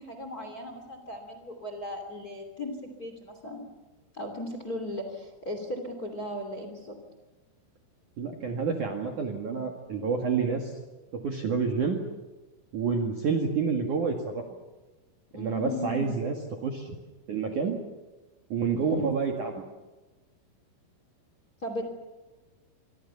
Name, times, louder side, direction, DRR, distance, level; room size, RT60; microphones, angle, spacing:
voice 1, 0.0-3.6 4.1-7.0 15.3-16.2 18.7-19.0 21.6-21.8, left 1 dB, 25° left, 6 dB, 2.3 m, -37 dB
voice 2, 8.2-10.7 11.1-12.0 12.7-14.4 15.4-16.3 16.6-16.9 17.3-17.8 18.5-19.5, right 5 dB, 55° right, 3 dB, 2.6 m, -28 dB
26.5 x 24.0 x 7.0 m, 1.2 s
omnidirectional pair, 5.9 m